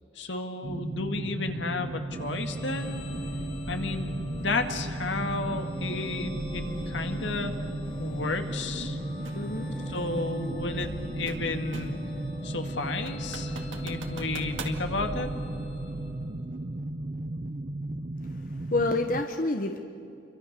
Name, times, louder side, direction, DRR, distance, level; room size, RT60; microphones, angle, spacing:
voice 1, 0.2-3.0 3.7-7.5 8.0-9.0 9.9-12.0 12.4-13.5 13.8-15.3, left 3 dB, 75° left, 6 dB, 2.2 m, -32 dB
sound 1, 0.6-19.2, right 1 dB, 40° right, 0.7 m, -35 dB
sound 2, 2.1-16.8, left 1 dB, 25° left, 3.9 m, -40 dB
voice 2, 8.9-10.0 18.2-19.8, left 2 dB, 45° left, 5 dB, 1.1 m, -30 dB
sound 3, 9.2-9.5 10.8-12.1 12.5-12.6 13.1-14.8, right 4 dB, 90° right, 2.3 m, -42 dB
28.5 x 24.5 x 6.8 m, 2.7 s
head